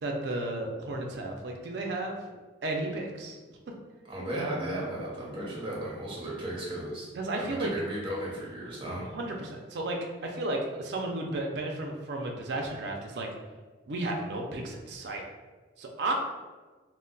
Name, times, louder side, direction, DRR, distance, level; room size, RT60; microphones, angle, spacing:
voice 1, 0.0-2.2 2.6-3.4 7.1-7.7 9.1-13.3 13.9-15.2 15.8-16.1, right 2 dB, 60° right, 1 dB, 0.4 m, -33 dB
voice 2, 4.0-7.1 7.3-9.1, right 1 dB, 25° right, -5 dB, 0.7 m, -35 dB
2.2 x 2.1 x 3.8 m, 1.3 s
head